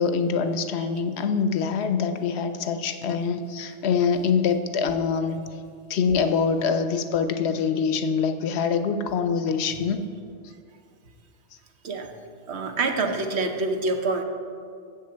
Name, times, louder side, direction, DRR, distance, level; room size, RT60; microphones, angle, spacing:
voice 1, 0.0-5.4 5.9-10.0, left 6 dB, 70° left, 9 dB, 0.8 m, -24 dB
voice 2, 12.5-14.2, right 3 dB, 70° right, 4 dB, 1.1 m, -26 dB
7.1 x 6.6 x 7.7 m, 2.3 s
omnidirectional pair, 1.2 m